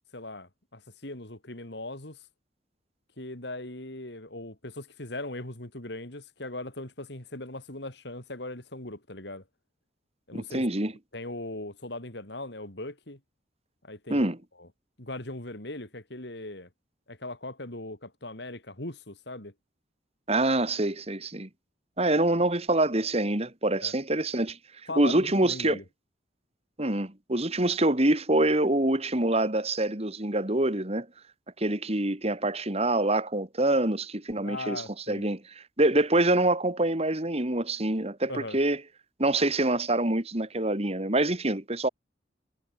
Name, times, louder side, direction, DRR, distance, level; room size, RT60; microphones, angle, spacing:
voice 1, 0.1-2.2 3.2-9.4 10.3-10.7 11.1-13.2 13.8-14.3 14.6-14.7 15.0-16.7 17.1-19.5 23.8-23.9 24.9-25.8 34.4-35.3 38.3-38.6, left 2 dB, 60° left, 3.6 m, -39 dB
voice 2, 10.3-10.9 14.1-14.4 20.3-21.5 22.0-24.6 25.0-25.8 26.8-31.1 31.6-35.4 35.8-38.8 39.2-41.9, right 1 dB, 35° right, 2.4 m, -25 dB
head